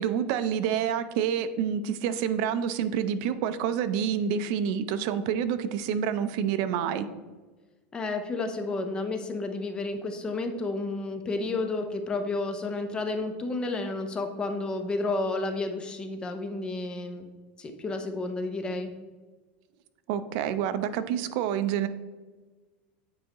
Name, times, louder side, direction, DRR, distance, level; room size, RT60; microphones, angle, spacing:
voice 1, 0.0-7.1 20.1-21.9, right 8 dB, 50° right, 11 dB, 0.5 m, -28 dB
voice 2, 7.9-17.3 17.6-18.9, left 2 dB, 15° left, 6 dB, 0.6 m, -31 dB
8.7 x 4.7 x 2.9 m, 1.3 s
supercardioid pair, 155°, 6 cm